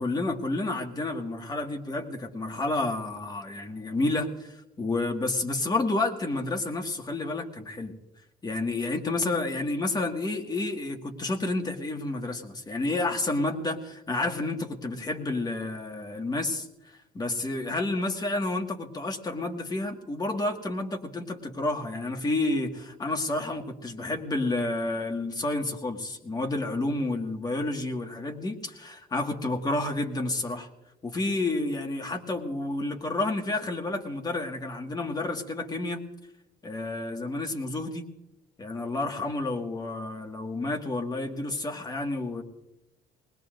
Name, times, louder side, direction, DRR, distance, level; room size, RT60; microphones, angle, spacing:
voice 1, 0.0-7.9 8.4-30.7 31.0-36.0 36.6-38.1 38.6-42.4, left 2 dB, 25° left, 3 dB, 1.9 m, -30 dB
20.5 x 20.0 x 2.6 m, 0.93 s
cardioid pair, 110°, 17 cm